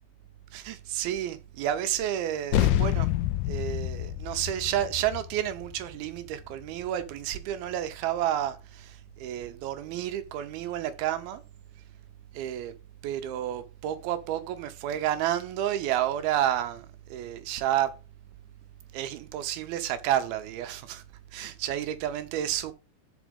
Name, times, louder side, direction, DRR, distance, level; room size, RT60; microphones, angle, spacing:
voice 1, 0.5-3.1 3.4-11.4 12.3-12.7 13.0-17.9 18.9-21.0 21.3-22.7, right 11 dB, 80° right, 2.6 m, -30 dB
sound 1, 2.5-7.3, left 13 dB, 75° left, 2.1 m, -28 dB
6.2 x 5.5 x 5.1 m
omnidirectional pair, 4.4 m